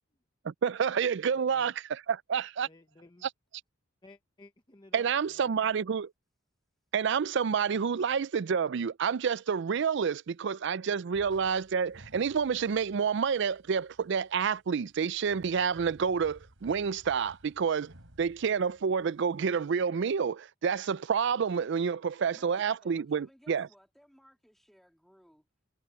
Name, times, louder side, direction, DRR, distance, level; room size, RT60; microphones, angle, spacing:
voice 1, 0.4-2.7 3.2-3.3 4.9-6.1 6.9-17.9 18.2-23.7, right 6 dB, 60° right, 0.4 m, -29 dB
voice 2, 2.6-3.3 4.0-5.7, left 2 dB, 20° left, 0.9 m, -56 dB
sound 1, 11.1-19.7, right 1 dB, 80° right, 3.7 m, -58 dB
voice 3, 22.3-25.5, equal, ahead, 3.4 m, -60 dB
head